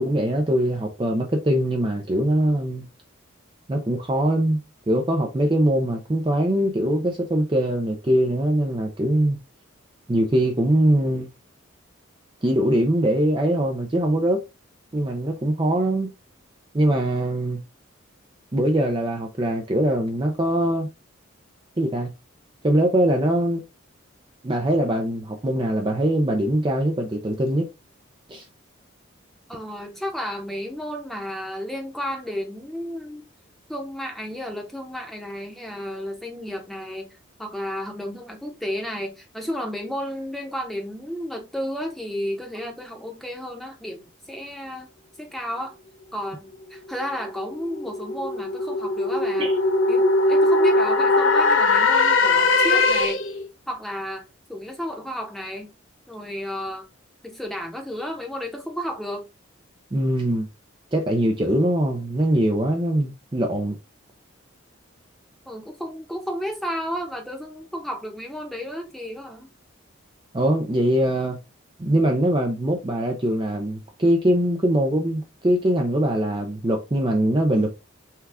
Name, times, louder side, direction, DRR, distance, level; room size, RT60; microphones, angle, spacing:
voice 1, 0.0-2.9 3.7-9.4 10.1-11.3 12.4-14.4 14.9-16.1 16.7-17.6 18.5-20.9 21.8-22.1 22.6-23.6 24.4-27.7 28.3-28.5 49.4-49.5 59.9-60.5 60.9-63.8 70.3-71.4 71.8-77.8, right 1 dB, 25° right, 0.5 m, -22 dB
voice 2, 29.5-33.3 33.7-44.9 45.2-45.8 46.1-49.5 49.9-53.2 53.7-54.2 54.5-55.7 56.1-56.9 57.2-59.3 65.5-69.5, equal, ahead, 0.9 m, -32 dB
sound 1, 47.3-53.4, left 3 dB, 70° left, 0.9 m, -20 dB
5.6 x 2.4 x 3.4 m
head